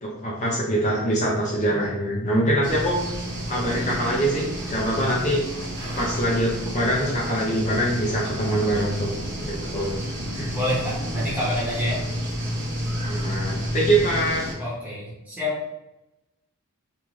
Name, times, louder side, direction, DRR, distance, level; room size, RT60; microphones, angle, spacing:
voice 1, 0.0-3.0 3.5-5.4 6.0-9.1 9.4-9.9 10.3-10.5 13.0-14.4, right 1 dB, 35° left, -4 dB, 0.6 m, -24 dB
sound 1, 2.6-14.5, equal, 55° right, 1.0 m, -31 dB
voice 2, 10.5-12.0 14.6-15.6, left 1 dB, 5° right, -7 dB, 0.9 m, -27 dB
2.6 x 2.3 x 3.1 m, 0.93 s
head